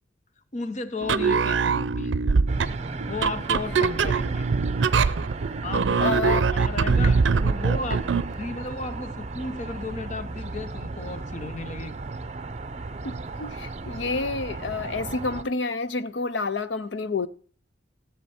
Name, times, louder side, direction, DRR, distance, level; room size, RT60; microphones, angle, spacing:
voice 1, 0.5-2.1 3.1-4.5 5.6-12.0, left 3 dB, 40° left, 0.7 m, -34 dB
sound 1, 1.0-8.3, right 5 dB, 80° right, 0.5 m, -23 dB
sound 2, 2.5-15.4, right 3 dB, 35° right, 0.6 m, -35 dB
voice 2, 6.0-6.5 13.0-17.3, left 3 dB, 75° left, 0.6 m, -29 dB
14.0 x 7.5 x 4.3 m
head